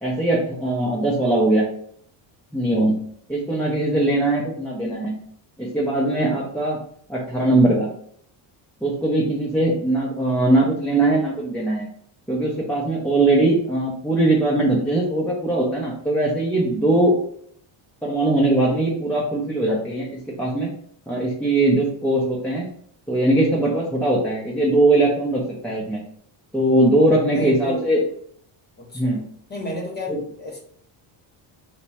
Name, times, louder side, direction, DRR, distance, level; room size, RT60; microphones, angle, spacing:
voice 1, 0.0-1.7 2.5-3.0 3.3-5.2 5.6-6.8 7.1-7.9 8.8-11.9 12.3-17.2 18.0-20.1 20.4-20.7 21.1-22.7 23.1-26.0 26.5-28.0 28.9-29.3 30.1-30.2, right 2 dB, 5° left, -6 dB, 0.5 m, -20 dB
voice 2, 27.3-27.9 28.8-29.2 29.5-30.6, left 1 dB, 20° left, -1 dB, 1.0 m, -32 dB
2.9 x 2.2 x 4.1 m, 0.62 s
cardioid pair, 130°, 49 cm